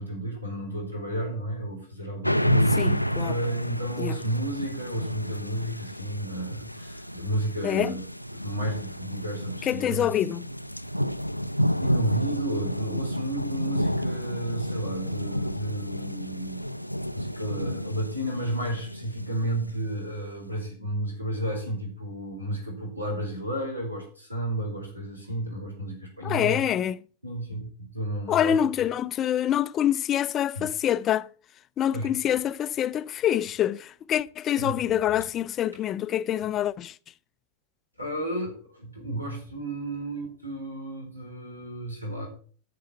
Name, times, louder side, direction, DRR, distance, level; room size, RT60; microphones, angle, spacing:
voice 1, 0.0-8.0 8.3-10.1 11.8-16.6 17.1-26.6 27.2-28.6 30.5-30.7 31.9-32.4 34.6-34.8 35.1-35.2 38.0-42.3, right 1 dB, 85° right, 4.3 m, -32 dB
sound 1, 2.2-20.1, equal, 90° left, 0.4 m, -30 dB
voice 2, 2.8-3.3 4.0-4.2 7.6-8.0 9.6-10.5 26.2-27.0 28.3-31.3 31.8-36.9, left 10 dB, 30° left, 0.4 m, -26 dB
10.0 x 6.7 x 5.7 m
figure-of-eight pair, 90°, 0 cm